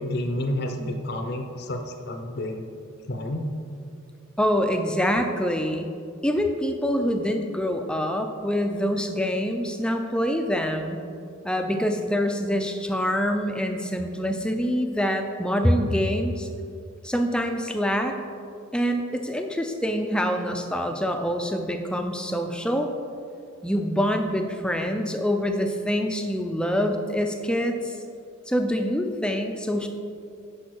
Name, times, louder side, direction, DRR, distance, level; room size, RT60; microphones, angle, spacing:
voice 1, 0.0-2.7 3.1-3.5, left 1 dB, 50° left, 4 dB, 0.7 m, -30 dB
voice 2, 4.4-5.9 6.2-11.0 11.4-16.5 17.0-18.2 18.7-22.9 23.6-27.9 28.5-29.9, equal, 5° left, 5 dB, 0.5 m, -25 dB
10.5 x 4.9 x 4.6 m, 2.4 s
head